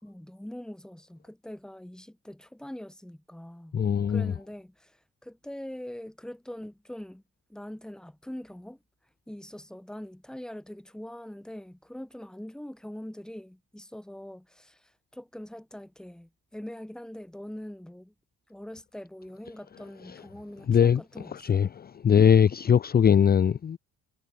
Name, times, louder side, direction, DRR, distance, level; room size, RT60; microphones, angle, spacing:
voice 1, 0.0-3.8 4.1-7.2 7.5-8.8 9.3-18.1 18.5-21.7, left 1 dB, ahead, 1.8 m, -43 dB
voice 2, 3.7-4.3 20.7-21.0 21.3-23.8, left 8 dB, 25° left, 0.8 m, -21 dB
cardioid pair, 160°, 37 cm